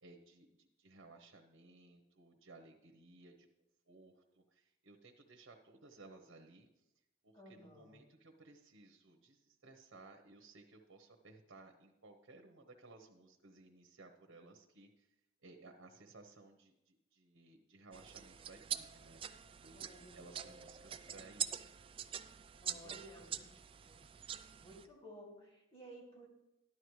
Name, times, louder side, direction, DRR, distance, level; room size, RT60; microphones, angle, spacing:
voice 1, 0.0-3.5 3.9-6.8 7.2-15.1 15.4-19.2 19.6-21.7 22.6-23.6, right 3 dB, 90° right, 3 dB, 1.0 m, -59 dB
voice 2, 7.3-8.0 19.7-20.9 22.6-23.4 23.9-24.0 24.6-26.3, right 1 dB, 30° left, -2 dB, 2.7 m, -56 dB
sound 1, 17.9-24.8, right 9 dB, 25° right, 0.3 m, -45 dB
12.5 x 11.0 x 3.2 m, 0.91 s
head